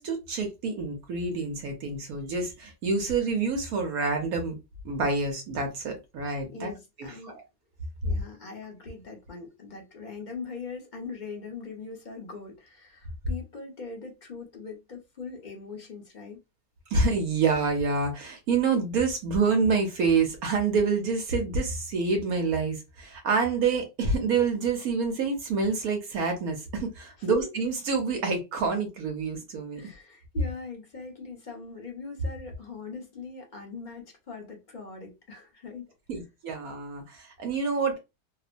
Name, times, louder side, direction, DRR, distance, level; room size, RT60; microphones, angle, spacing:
voice 1, 0.0-4.6 4.8-6.7 7.0-7.4 16.9-29.8 36.1-38.0, right 4 dB, 70° right, 1.1 m, -27 dB
voice 2, 6.5-7.4 8.0-16.4 27.2-27.5 29.7-35.9, left 4 dB, 40° left, 0.7 m, -41 dB
2.8 x 2.0 x 2.5 m
omnidirectional pair, 1.7 m